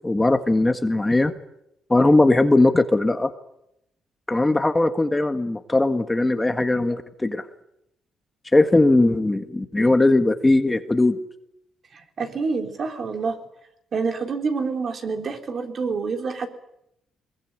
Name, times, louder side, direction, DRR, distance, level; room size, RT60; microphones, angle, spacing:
voice 1, 0.0-1.3 1.9-3.3 4.3-7.4 8.5-11.2, left 2 dB, 15° left, 8 dB, 1.8 m, -19 dB
voice 2, 11.9-13.4 13.9-16.5, right 4 dB, 50° right, 4 dB, 3.8 m, -27 dB
22.0 x 21.5 x 9.1 m, 0.80 s
cardioid pair, 90°, 0 cm